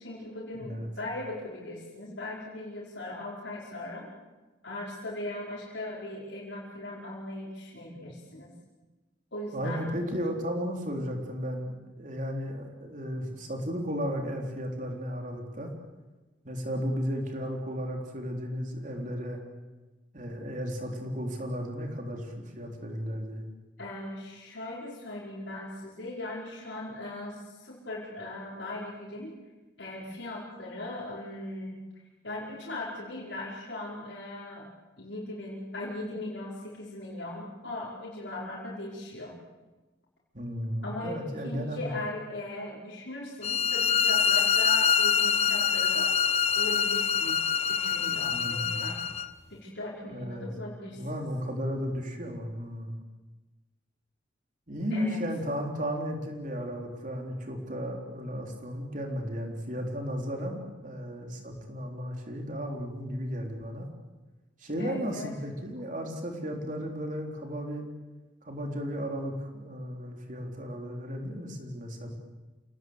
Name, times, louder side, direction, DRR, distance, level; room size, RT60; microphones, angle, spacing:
voice 1, 0.0-4.1 4.6-8.5 9.3-9.9 23.8-29.4 29.8-31.8 32.2-34.7 35.0-39.3 40.8-46.1 46.5-49.0 49.5-51.2 54.9-55.2 64.8-65.3, left 1 dB, 65° left, -5 dB, 5.1 m, -39 dB
voice 2, 0.5-0.9 9.5-15.7 16.4-19.4 20.1-23.4 40.3-42.0 48.3-48.9 50.0-50.5 50.9-53.0 54.7-63.9 64.6-67.9 68.4-72.1, equal, 40° right, 2 dB, 3.8 m, -34 dB
sound 1, 43.4-49.3, left 6 dB, 30° left, 0.7 m, -25 dB
27.5 x 19.0 x 8.1 m, 1.2 s
head